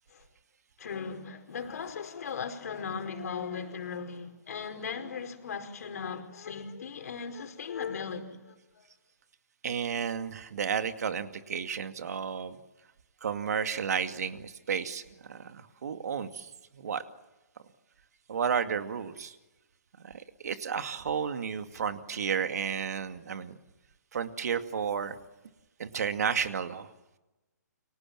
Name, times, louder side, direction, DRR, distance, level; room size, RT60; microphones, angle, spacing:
voice 1, 0.8-8.9, left 6 dB, 60° left, 4.9 m, -38 dB
voice 2, 9.6-12.6 13.2-17.0 18.3-19.4 20.0-23.5 24.1-25.2 25.8-26.9, right 7 dB, 65° right, 2.3 m, -32 dB
30.0 x 25.0 x 7.5 m
hypercardioid pair, 140°, 10 cm